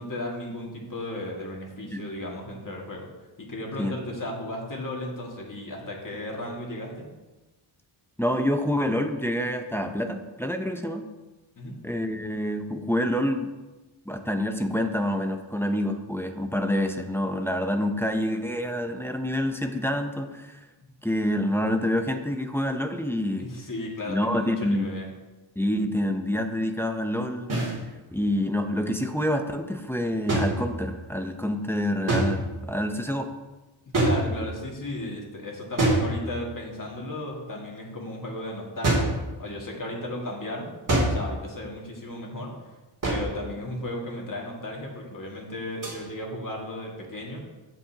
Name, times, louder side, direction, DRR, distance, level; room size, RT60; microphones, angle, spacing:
voice 1, 0.0-3.1 3.4-7.1 11.6-11.8 20.8-20.9 23.4-25.1 34.0-40.7 41.0-42.5 43.1-47.4, left 1 dB, 40° left, -1 dB, 2.1 m, -35 dB
voice 2, 8.2-11.0 11.8-13.5 14.1-20.6 21.0-23.5 24.1-24.9 25.6-27.8 28.1-33.3, left 1 dB, 5° left, 5 dB, 0.6 m, -27 dB
sound 1, 27.5-27.8 30.3-31.1 32.1-32.7 33.9-34.7 35.8-36.6 38.8-39.3 40.9-41.4 43.0-43.5 45.8-46.0, right 1 dB, 40° right, 2.9 m, -25 dB
16.0 x 5.5 x 2.9 m, 1.1 s
wide cardioid pair, 105°, 49 cm